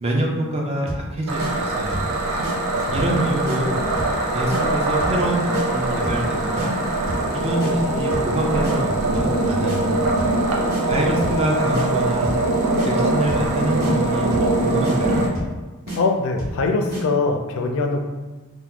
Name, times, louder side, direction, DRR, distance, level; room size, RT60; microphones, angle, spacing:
voice 1, 0.0-2.0 2.9-3.8 4.3-6.7 7.3-9.8 10.9-12.3 12.9-14.3 14.6-15.3, right 1 dB, 25° right, -1 dB, 0.5 m, -25 dB
sound 1, 0.9-1.1 1.4-1.5 1.9-2.1 2.4-2.5 2.9-3.2 3.5-3.6 4.0-4.2 4.5-4.6 5.0-5.2 5.5-5.7 6.0-6.3 6.6-6.7 7.1-7.3 7.6-7.7 8.1-8.3 8.6-8.8 9.1-9.4 9.7-9.8 10.2-10.4 10.7-10.8 11.2-11.4 11.7-11.9 12.2-12.5 12.8-12.9 13.3-13.5 13.8-13.9 14.3-14.5 14.8-15.0 15.4-15.6 15.9-16.0 16.4-16.6 16.9-17.0, right 1 dB, 45° right, 1.1 m, -30 dB
sound 2, 1.3-15.3, right 2 dB, 80° right, 0.6 m, -22 dB
voice 2, 10.9-11.4 16.0-18.0, left 3 dB, 60° left, 4 dB, 0.4 m, -23 dB
2.9 x 2.1 x 3.6 m, 1.2 s
head